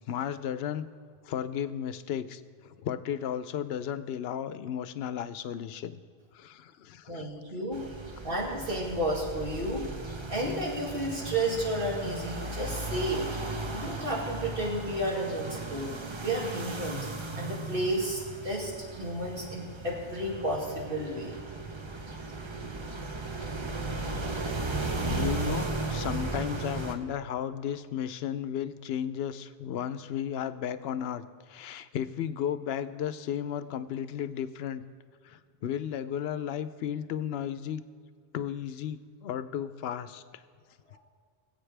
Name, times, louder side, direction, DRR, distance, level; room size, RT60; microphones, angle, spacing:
voice 1, 0.1-0.9 1.2-6.0 6.3-7.3 25.0-34.8 35.2-37.8 38.3-40.2, left 9 dB, 80° left, 13 dB, 0.8 m, -34 dB
voice 2, 7.1-7.8 8.2-9.8 10.3-13.3 13.7-15.9 16.2-17.1 17.4-21.3 40.9-41.0, right 1 dB, 60° right, -3 dB, 2.6 m, -32 dB
sound 1, 7.7-27.0, right 3 dB, 30° right, 0.7 m, -36 dB
20.5 x 8.3 x 3.3 m, 2.1 s
omnidirectional pair, 1.0 m